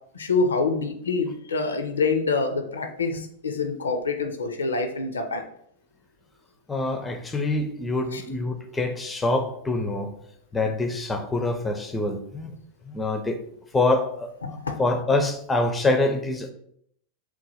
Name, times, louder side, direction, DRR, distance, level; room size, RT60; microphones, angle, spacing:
voice 1, 0.1-5.4 8.1-8.2 14.4-14.8, left 4 dB, 70° left, 6 dB, 0.4 m, -26 dB
voice 2, 6.7-10.1 10.5-12.5 12.9-13.4 13.7-14.3 14.8-16.5, left 2 dB, 10° left, 6 dB, 0.4 m, -25 dB
3.0 x 2.1 x 4.1 m, 0.67 s
figure-of-eight pair, 90°, 0 cm